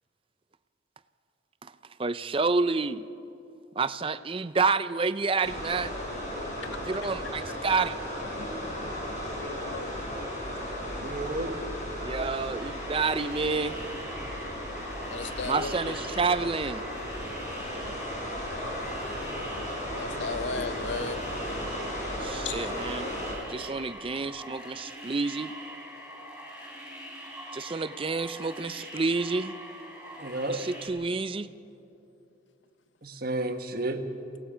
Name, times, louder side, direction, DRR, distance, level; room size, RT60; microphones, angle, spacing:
voice 1, 2.0-3.1 3.8-6.0 6.9-8.0 12.0-13.8 15.5-16.9 22.2-23.1 23.5-25.5 27.5-29.6 30.5-31.5, right 4 dB, 25° right, 13 dB, 0.5 m, -29 dB
sound 1, 5.4-23.4, equal, 40° left, 4.8 m, -35 dB
voice 2, 9.4-9.9 11.6-11.7 15.1-16.0 19.9-21.2 22.4-22.7, left 4 dB, 70° left, 12 dB, 0.8 m, -36 dB
voice 3, 10.9-11.6 30.2-30.6 33.0-34.0, right 2 dB, 50° right, 5 dB, 1.4 m, -32 dB
sound 2, 12.6-30.9, equal, 5° right, 4.6 m, -44 dB
29.5 x 17.0 x 5.1 m, 2.8 s
head